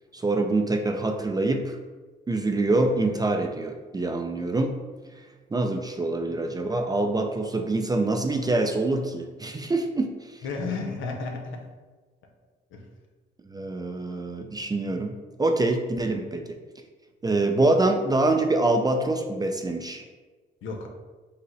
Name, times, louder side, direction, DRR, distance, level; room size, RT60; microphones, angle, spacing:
voice 1, 0.1-1.8 2.3-4.8 5.5-10.1 13.5-15.1 15.4-16.4 17.2-20.0, right 2 dB, 20° right, 4 dB, 0.4 m, -25 dB
voice 2, 10.4-11.7 12.7-12.8 20.6-20.9, left 4 dB, 80° left, 3 dB, 0.7 m, -32 dB
5.3 x 2.0 x 3.9 m, 1.3 s
cardioid pair, 90°, 20 cm